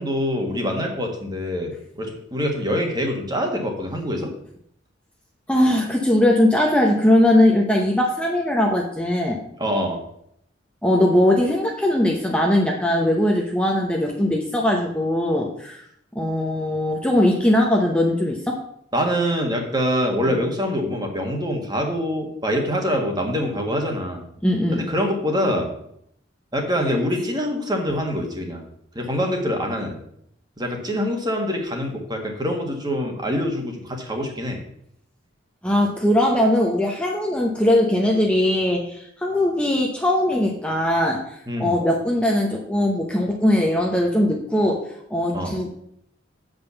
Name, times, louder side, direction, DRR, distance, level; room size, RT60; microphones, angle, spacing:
voice 1, 0.0-4.3 9.6-10.0 18.9-24.2 24.7-25.7 26.5-28.6 28.9-30.0 30.6-34.6 41.5-41.7 45.3-45.5, equal, 20° right, 2 dB, 1.6 m, -25 dB
voice 2, 5.5-9.4 10.8-15.8 16.1-18.6 24.4-24.8 35.6-41.2 41.6-44.8 45.1-45.7, left 1 dB, 5° left, -1 dB, 0.9 m, -20 dB
7.7 x 5.3 x 6.9 m, 0.71 s
head